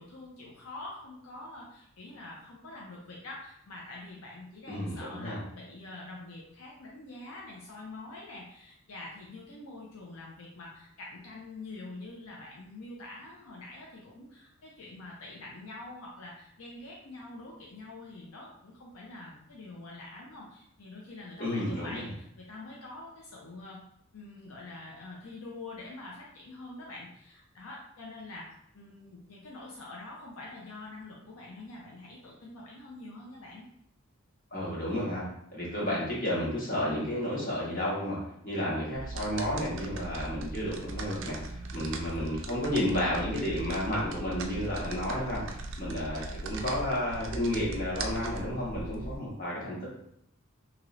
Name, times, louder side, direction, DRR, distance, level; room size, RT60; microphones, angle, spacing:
voice 1, 0.0-23.8 24.1-28.5 28.7-33.7 45.8-46.0, left 2 dB, 80° left, -3 dB, 0.5 m, -45 dB
voice 2, 4.7-5.4 21.4-22.1 34.5-50.0, left 1 dB, 45° left, -7 dB, 1.3 m, -32 dB
sound 1, 38.9-49.2, right 3 dB, 60° right, 0.4 m, -39 dB
3.1 x 2.8 x 2.5 m, 0.73 s
head